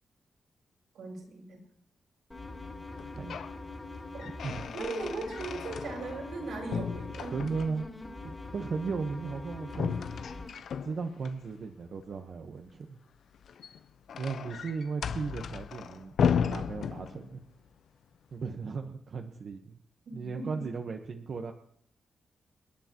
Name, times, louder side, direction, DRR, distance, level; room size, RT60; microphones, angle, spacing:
voice 1, 0.9-1.6 4.1-4.3 4.7-7.3 20.0-20.5, right 3 dB, 90° right, -1 dB, 6.8 m, -38 dB
sound 1, 2.3-10.5, left 2 dB, 20° left, 2.8 m, -43 dB
sound 2, 2.9-3.6 3.9-6.4 6.7-7.9 9.7-11.3 13.3-17.5, left 7 dB, 75° left, 0.7 m, -34 dB
voice 2, 4.2-4.6 7.3-7.9 8.2-10.0 10.8-13.0 14.2-16.1 16.5-17.4 18.3-19.8 20.1-21.5, right 4 dB, 55° right, 4 dB, 1.2 m, -36 dB
29.5 x 10.0 x 3.1 m, 0.65 s
wide cardioid pair, 120°, 0 cm